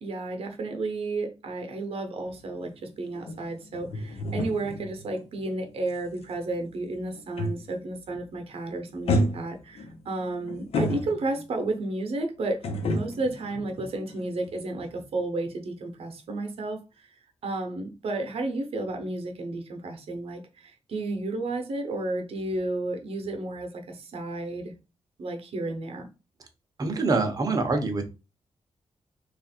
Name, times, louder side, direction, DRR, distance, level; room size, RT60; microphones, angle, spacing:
voice 1, 0.0-2.7 3.0-17.1 17.4-24.7 25.2-26.1, right 2 dB, 65° right, 0.9 m, -32 dB
sound 1, 2.2-7.9 8.2-8.6 9.1-11.6 12.6-14.6 14.8-15.0, left 1 dB, 70° left, 0.8 m, -31 dB
voice 2, 26.8-28.1, right 3 dB, 35° right, 0.8 m, -25 dB
3.2 x 2.5 x 4.2 m
wide cardioid pair, 140°, 11 cm